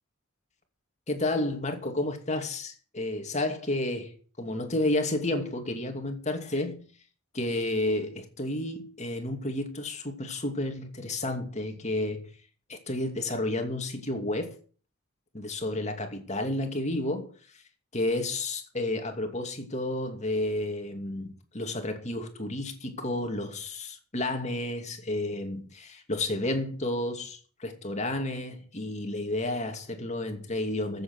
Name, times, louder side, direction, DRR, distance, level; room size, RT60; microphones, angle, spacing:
voice 1, 1.1-6.9 7.3-12.3 12.7-14.5 15.3-17.3 17.9-31.0, left 1 dB, 35° left, 2.7 m, -31 dB
14.5 x 8.0 x 6.3 m
head